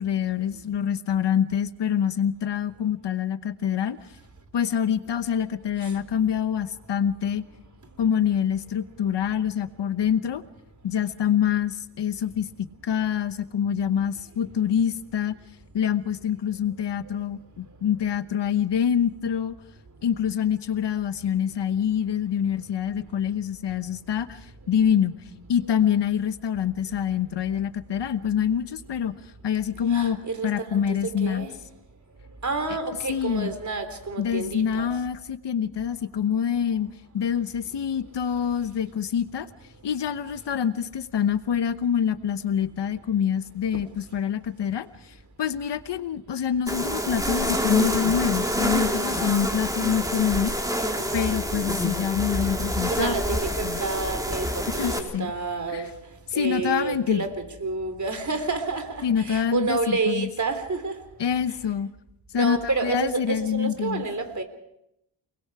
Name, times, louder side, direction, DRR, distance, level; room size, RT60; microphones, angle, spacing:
voice 1, 0.0-4.0 4.5-7.4 8.0-10.4 10.8-12.5 12.8-15.4 15.7-19.6 20.0-25.2 25.5-29.1 29.4-31.5 32.7-32.8 33.0-33.5 34.2-36.9 37.1-39.5 39.8-50.6 51.1-53.2 53.6-53.8 54.7-55.3 55.7-55.9 56.3-57.3 59.0-60.3 61.2-61.9 62.3-64.0, left 8 dB, 85° left, 1.1 m, -26 dB
voice 2, 29.9-31.5 32.4-34.9 52.9-57.4 57.6-61.1 62.3-64.4, right 4 dB, 45° right, 3.5 m, -29 dB
sound 1, 46.7-55.0, equal, 10° right, 3.8 m, -27 dB
29.5 x 20.5 x 4.9 m
wide cardioid pair, 90°, 41 cm